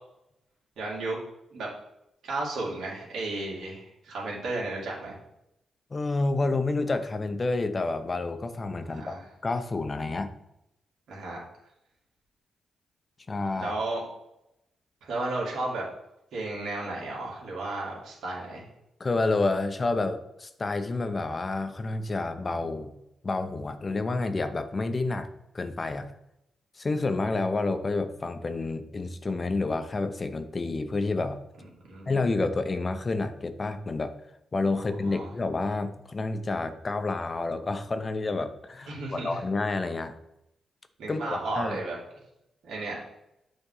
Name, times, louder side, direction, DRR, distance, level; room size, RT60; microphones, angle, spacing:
voice 1, 0.8-1.2 1.5-1.7 2.2-5.2 8.8-9.2 11.1-11.4 13.5-14.1 15.0-15.8 16.3-18.6 31.9-32.1 34.7-35.3 38.9-39.4 41.0-42.0 42.6-43.0, right 2 dB, 75° right, -4 dB, 2.4 m, -33 dB
voice 2, 5.9-9.1 9.4-10.3 13.3-13.7 19.0-22.9 23.2-25.3 25.5-26.1 26.8-31.4 32.1-34.1 34.5-40.1 41.1-41.8, left 3 dB, 40° left, 9 dB, 0.8 m, -29 dB
6.8 x 3.5 x 5.6 m, 0.85 s
supercardioid pair, 50°, 0 cm